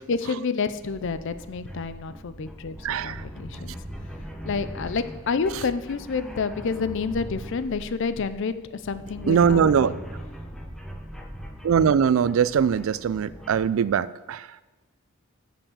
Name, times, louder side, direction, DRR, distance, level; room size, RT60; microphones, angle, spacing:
voice 1, 0.1-3.8 4.4-10.0, left 5 dB, 60° left, 13 dB, 0.5 m, -29 dB
sound 1, 0.6-13.7, equal, ahead, 0.8 m, -40 dB
voice 2, 2.8-3.2 9.3-9.9 11.6-14.5, right 7 dB, 65° right, 17 dB, 0.3 m, -21 dB
7.0 x 5.6 x 7.1 m, 1.2 s
head